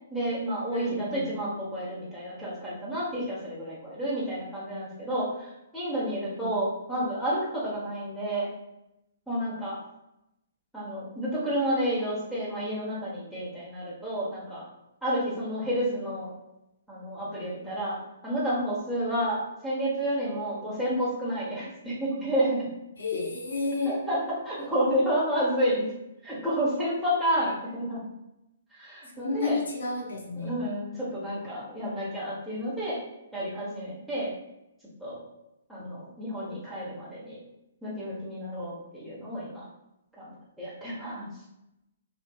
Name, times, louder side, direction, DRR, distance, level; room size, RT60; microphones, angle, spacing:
voice 1, 0.1-8.5 9.3-9.8 10.7-14.6 15.0-16.3 16.9-18.0 18.2-22.6 23.9-25.9 26.2-28.0 28.8-29.6 30.4-33.0 33.3-34.3 35.0-35.2 35.7-37.4 37.8-39.6 40.2-41.3, equal, ahead, -10 dB, 1.0 m, -30 dB
voice 2, 0.7-1.3 6.4-6.5 23.0-24.0 29.1-30.5, left 3 dB, 70° left, -1 dB, 0.7 m, -31 dB
2.7 x 2.5 x 2.3 m, 0.89 s
figure-of-eight pair, 125°, 0 cm